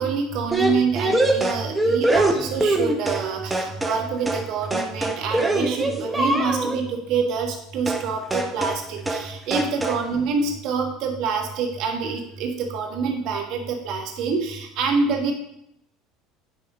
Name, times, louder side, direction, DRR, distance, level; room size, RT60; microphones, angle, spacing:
voice 1, 0.0-15.3, right 5 dB, 65° right, 2 dB, 1.4 m, -26 dB
sound 1, 0.5-3.3 3.5-4.0 4.3-4.5 4.7-6.8 7.9-8.1 8.3-8.8 9.1-9.3 9.5-10.0, right 2 dB, 15° right, 1.0 m, -23 dB
10.0 x 3.4 x 5.0 m, 0.76 s
hypercardioid pair, 80°, 0 cm